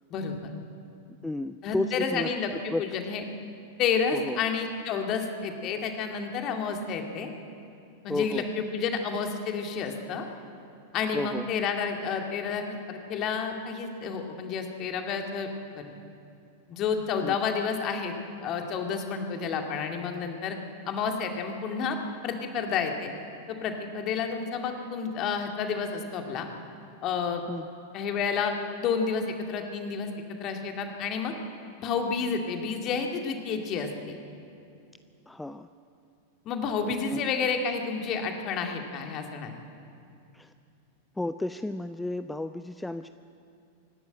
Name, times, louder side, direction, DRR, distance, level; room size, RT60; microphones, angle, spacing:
voice 1, 0.1-0.5 1.6-3.2 3.8-7.3 8.0-10.3 10.9-15.5 15.8-15.9 16.7-18.1 18.4-20.6 20.9-22.0 22.2-23.1 23.5-26.5 27.0-27.4 27.9-30.1 30.4-31.3 31.8-34.2 36.5-39.5, left 5 dB, 35° left, 4 dB, 2.3 m, -30 dB
voice 2, 1.2-2.8 4.1-4.4 8.1-8.5 11.1-11.5 17.2-17.4 27.5-27.7 35.3-35.7 36.8-37.2 40.3-40.5 41.2-43.1, left 2 dB, 5° left, 11 dB, 0.5 m, -33 dB
25.0 x 11.5 x 8.9 m, 2.6 s
figure-of-eight pair, 90°, 0 cm